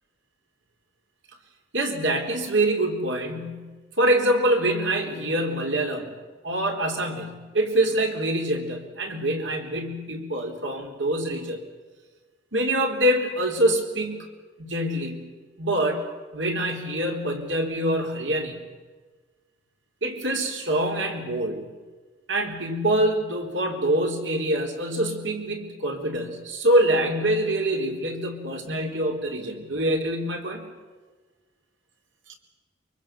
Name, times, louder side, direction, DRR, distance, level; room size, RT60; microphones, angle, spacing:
voice 1, 1.7-6.1 6.4-11.6 12.5-14.2 14.6-15.2 15.6-16.1 16.3-18.6 20.0-21.7 22.3-30.6 32.3-32.4, right 1 dB, 75° right, 4 dB, 3.8 m, -25 dB
24.0 x 23.5 x 7.6 m, 1.3 s
head